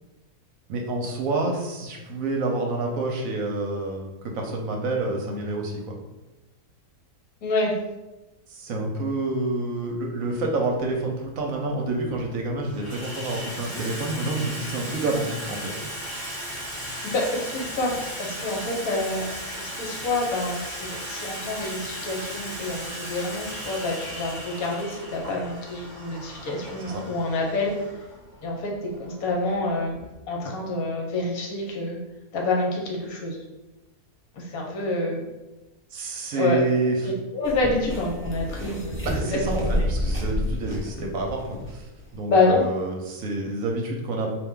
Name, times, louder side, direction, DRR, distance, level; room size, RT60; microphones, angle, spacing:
voice 1, 0.7-5.7 8.5-15.7 26.8-27.0 35.9-37.1 39.0-41.9 42.1-44.3, right 2 dB, 65° right, 1 dB, 1.0 m, -28 dB
voice 2, 7.4-7.7 17.0-19.3 19.5-27.9 28.4-30.0 30.3-32.0 32.3-33.4 34.3-35.2 36.3-36.6 37.0-39.9 42.3-42.6, left 2 dB, 70° left, -1 dB, 1.3 m, -27 dB
Water tap faucet / Sink (filling or washing), 10.8-10.9 11.8-12.2 12.5-30.1, equal, 55° left, 2.0 m, -36 dB
sound 1, 37.4-42.0 42.3-42.4, left 1 dB, 10° left, 0.6 m, -29 dB
4.2 x 2.7 x 3.6 m, 1.1 s
omnidirectional pair, 1.6 m